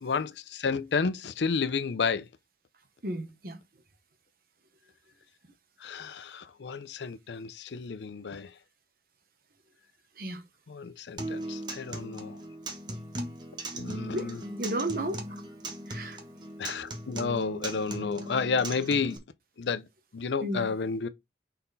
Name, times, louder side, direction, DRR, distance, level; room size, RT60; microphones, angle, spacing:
voice 1, 0.0-2.3 5.8-8.5 10.7-12.4 13.7-14.4 16.6-19.2 19.6-19.8 20.1-21.1, left 5 dB, 80° left, 0.5 m, -31 dB
voice 2, 3.0-3.6 10.2-10.4 14.1-14.3 14.6-15.2 15.9-16.2 20.4-20.7, right 1 dB, 55° right, 1.0 m, -33 dB
Acoustic guitar, 11.2-19.2, right 1 dB, 25° right, 1.0 m, -38 dB
5.7 x 4.2 x 4.0 m
head